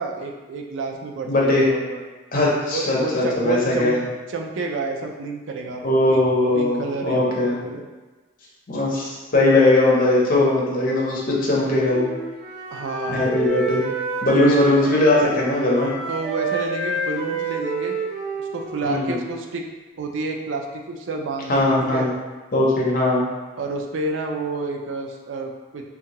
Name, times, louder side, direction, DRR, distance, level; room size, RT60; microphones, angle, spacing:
voice 1, 0.0-2.0 2.7-4.0 4.3-5.8 6.1-6.2 6.5-7.8 12.7-13.2 14.3-14.6 16.1-18.0 18.4-19.6 20.0-22.1 23.6-25.9, right 3 dB, 90° right, 2 dB, 0.4 m, -29 dB
voice 2, 1.3-1.6 2.3-4.0 5.8-7.5 8.7-12.1 13.1-13.8 14.2-15.9 18.8-19.2 21.5-22.1 22.5-23.2, left 2 dB, 45° left, -4 dB, 0.7 m, -19 dB
Wind instrument woodwind instrument, 11.9-19.6, right 3 dB, 45° right, 0.7 m, -29 dB
2.7 x 2.3 x 2.9 m, 1.2 s
head